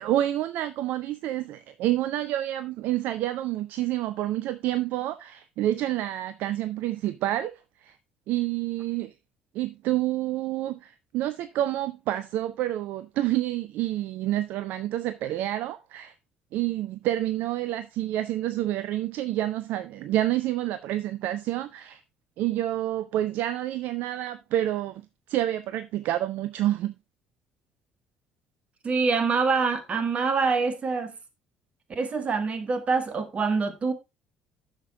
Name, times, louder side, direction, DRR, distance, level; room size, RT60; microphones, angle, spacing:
voice 1, 0.0-7.5 7.8-8.0 8.3-9.1 9.5-16.1 16.5-22.0 22.4-25.0 25.3-26.9, right 13 dB, 55° right, 0.5 m, -28 dB
voice 2, 28.8-31.1 31.9-33.9, right 4 dB, 35° right, 1.8 m, -25 dB
11.0 x 6.7 x 3.7 m
figure-of-eight pair, 50°, 4 cm